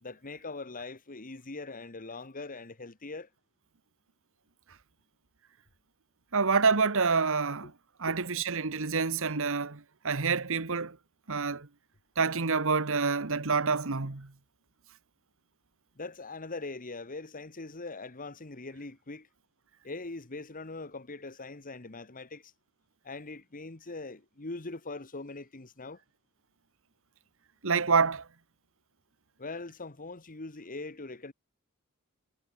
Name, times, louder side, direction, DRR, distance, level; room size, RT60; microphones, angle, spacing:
voice 1, 0.0-3.3 7.6-7.7 8.1-8.2 16.0-19.3 19.8-22.5 23.0-26.0 29.4-31.3, left 3 dB, 40° left, 1.5 m, -41 dB
voice 2, 6.3-7.7 8.0-11.0 11.3-11.7 12.2-14.3 27.6-28.3, right 4 dB, 65° right, 1.4 m, -27 dB
head